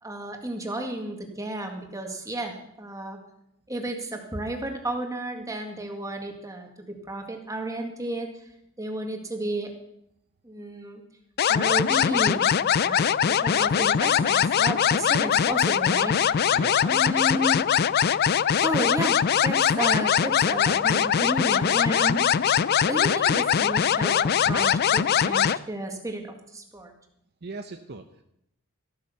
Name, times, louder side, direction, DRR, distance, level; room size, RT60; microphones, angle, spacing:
voice 1, 0.0-3.2 3.7-8.3 8.8-9.7 10.4-11.0 11.5-16.5 16.8-17.6 18.6-22.3 22.9-26.2 26.5-26.9, right 1 dB, 15° right, 3 dB, 2.0 m, -32 dB
sound 1, 11.4-25.6, left 8 dB, 45° left, 0.4 m, -22 dB
voice 2, 16.5-16.9 27.4-28.2, right 3 dB, 50° right, 7 dB, 0.7 m, -39 dB
14.5 x 8.8 x 7.0 m, 0.78 s
head